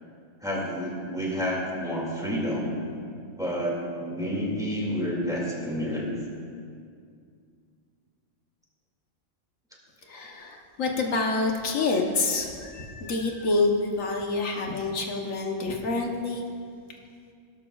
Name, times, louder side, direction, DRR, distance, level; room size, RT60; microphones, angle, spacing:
voice 1, 0.4-2.8 3.4-6.2, equal, 5° right, -3 dB, 2.2 m, -29 dB
voice 2, 10.1-16.5, left 3 dB, 85° left, 1 dB, 1.4 m, -27 dB
17.5 x 12.0 x 2.4 m, 2.3 s
omnidirectional pair, 1.3 m